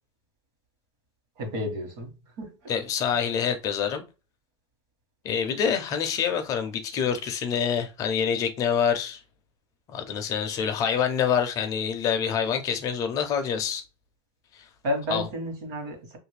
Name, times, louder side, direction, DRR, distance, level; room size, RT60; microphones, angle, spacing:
voice 1, 1.4-2.1 2.4-2.7 14.8-16.2, left 1 dB, 45° right, 1.1 m, -31 dB
voice 2, 2.7-4.0 5.2-9.2 9.9-13.8 14.5-14.7 15.1-15.3, left 7 dB, 25° left, 0.4 m, -26 dB
3.0 x 2.5 x 3.2 m
supercardioid pair, 170°, 14 cm